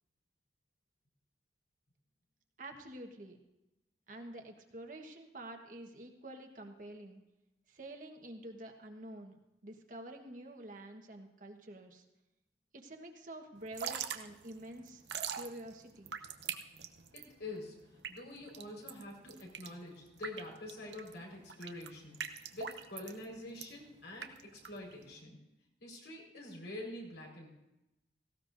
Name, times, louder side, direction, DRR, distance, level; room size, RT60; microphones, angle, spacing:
voice 1, 2.6-3.4 4.1-7.2 7.7-9.4 9.6-12.0 12.7-15.0 15.3-16.1, right 1 dB, 50° right, 3 dB, 1.4 m, -48 dB
Drip / Trickle dribble, 13.6-25.2, right 8 dB, 80° right, 0.8 m, -44 dB
voice 2, 17.1-17.8 18.1-22.2 22.5-25.4 25.8-27.5, left 2 dB, 75° left, -1 dB, 4.8 m, -46 dB
18.0 x 16.5 x 2.7 m, 0.93 s
head